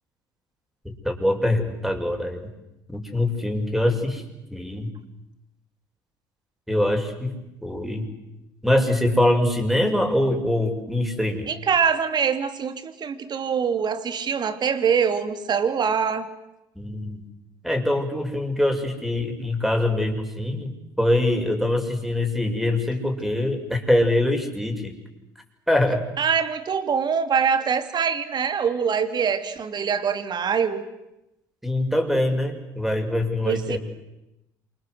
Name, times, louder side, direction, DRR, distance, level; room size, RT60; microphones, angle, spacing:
voice 1, 1.0-2.4 2.9-4.2 4.5-4.9 6.7-7.3 7.6-8.1 8.6-11.5 16.8-17.2 17.6-20.7 21.0-25.0 25.7-26.0 31.6-33.8, left 1 dB, ahead, 4 dB, 6.9 m, -23 dB
voice 2, 11.5-16.3 26.2-30.8 33.4-33.8, right 6 dB, 45° right, 10 dB, 3.1 m, -24 dB
27.5 x 26.0 x 8.1 m, 0.92 s
hypercardioid pair, 55°, 10 cm